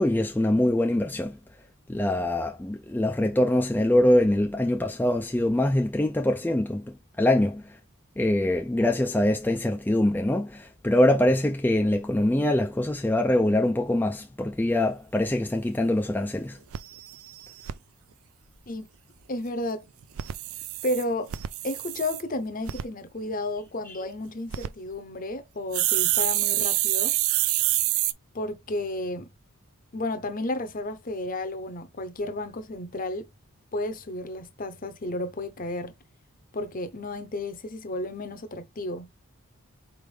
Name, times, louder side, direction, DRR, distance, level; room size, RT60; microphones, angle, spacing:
voice 1, 0.0-1.4 1.9-7.8 8.2-16.6 23.9-24.0, left 1 dB, 10° left, 0.4 m, -24 dB
sound 1, 15.6-15.7 16.1-16.2 16.4-16.5 16.7-17.7 20.0-22.2 22.7-22.8 24.3-24.7 25.7-28.1, right 15 dB, 70° right, 0.4 m, -27 dB
voice 2, 19.3-19.9 20.8-21.3 21.6-27.1 28.3-29.3 29.9-33.3 33.7-35.9 36.5-39.1, left 1 dB, 40° left, 0.8 m, -32 dB
4.5 x 3.5 x 3.3 m
head